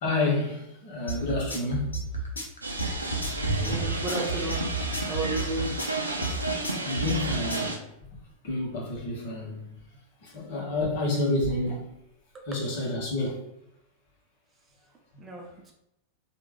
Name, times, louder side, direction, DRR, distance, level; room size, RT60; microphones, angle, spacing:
voice 1, 0.0-1.9 3.5-3.8 6.8-7.8 8.4-9.7 10.2-11.9 12.5-13.4, left 2 dB, 50° left, -2 dB, 1.2 m, -29 dB
sound 1, 1.1-7.7, right 3 dB, 75° left, 0.7 m, -32 dB
sound 2, 2.6-7.8, right 2 dB, 80° right, 0.5 m, -32 dB
voice 2, 3.6-4.7 5.0-5.7 15.2-15.7, right 2 dB, 20° right, 1 dB, 0.6 m, -33 dB
3.3 x 2.4 x 3.3 m, 0.81 s
figure-of-eight pair, 90°, 0 cm